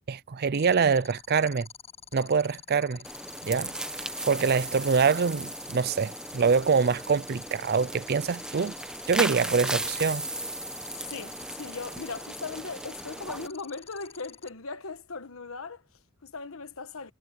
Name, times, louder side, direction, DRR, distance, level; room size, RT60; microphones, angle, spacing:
voice 1, 0.0-1.7 2.1-3.0 3.4-3.8 4.3-8.7 9.1-10.2, right 5 dB, 50° right, 0.5 m, -25 dB
sound 1, 0.5-14.5, left 8 dB, 30° left, 6.6 m, -47 dB
sound 2, 3.0-13.5, right 1 dB, 5° right, 1.0 m, -36 dB
voice 2, 10.9-17.1, left 4 dB, 80° left, 1.2 m, -39 dB
head